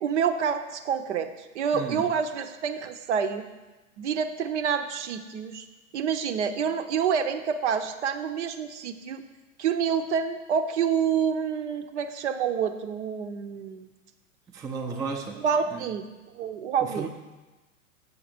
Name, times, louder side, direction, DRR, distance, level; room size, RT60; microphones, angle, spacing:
voice 1, 0.0-1.3 1.5-3.4 4.0-5.7 5.9-9.2 9.6-13.9 15.4-16.0 16.3-17.1, right 7 dB, 55° right, 9 dB, 0.7 m, -27 dB
voice 2, 1.7-2.1 14.5-15.4 15.7-15.9 16.8-17.1, right 4 dB, 10° right, 1 dB, 0.5 m, -34 dB
7.3 x 6.4 x 5.0 m, 1.1 s
figure-of-eight pair, 100°, 42 cm